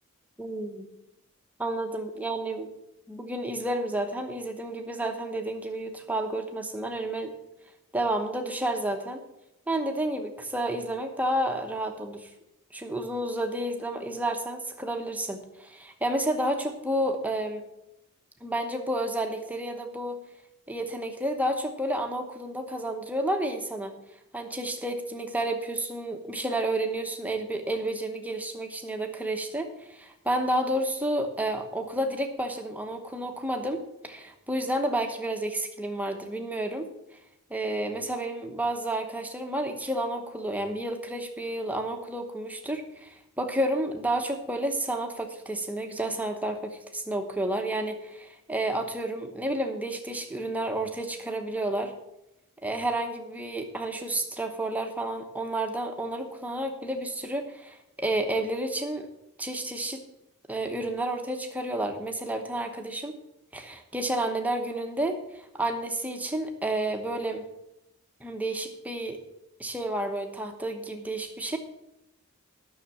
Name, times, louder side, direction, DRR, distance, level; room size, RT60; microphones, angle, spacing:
voice 1, 0.4-0.9 1.6-2.7 3.1-7.3 7.9-9.2 9.7-12.3 12.7-17.6 18.4-20.2 20.7-23.9 24.3-36.9 37.5-51.9 52.6-59.1 59.4-60.0 60.5-63.2 63.5-67.4 68.2-69.2 69.6-71.6, right 1 dB, 5° right, 4 dB, 0.9 m, -30 dB
9.9 x 6.4 x 7.0 m, 0.86 s
head